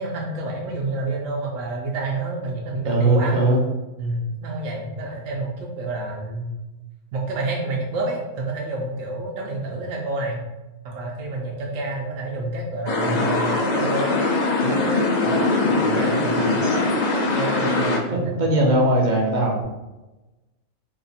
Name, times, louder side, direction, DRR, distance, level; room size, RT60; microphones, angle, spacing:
voice 1, 0.0-3.4 4.0-6.5 7.1-10.4 10.8-14.1 14.6-16.8 17.3-18.4, right 2 dB, 75° right, -2 dB, 0.9 m, -28 dB
voice 2, 2.8-3.6 15.7-16.0 18.1-19.6, right 1 dB, 50° right, -1 dB, 0.6 m, -20 dB
sound 1, 12.9-18.0, left 2 dB, 65° left, 0.4 m, -22 dB
2.8 x 2.5 x 4.0 m, 1.1 s
omnidirectional pair, 1.4 m